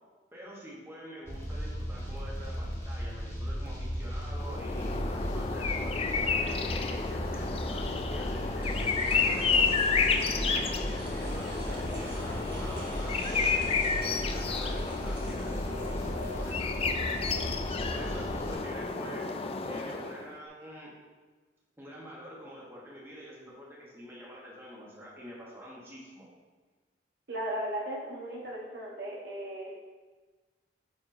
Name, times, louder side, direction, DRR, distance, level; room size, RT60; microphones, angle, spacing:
voice 1, 0.3-19.2 19.6-20.9 21.8-26.3, equal, 15° right, -6 dB, 1.4 m, -46 dB
sound 1, 1.3-18.5, equal, 15° left, 1.0 m, -36 dB
sound 2, 4.4-20.3, left 4 dB, 35° left, 0.3 m, -31 dB
sound 3, 8.6-16.9, right 1 dB, 30° right, 1.5 m, -49 dB
voice 2, 27.3-29.7, right 1 dB, 65° right, -4 dB, 1.3 m, -36 dB
6.1 x 5.8 x 2.8 m, 1.3 s
head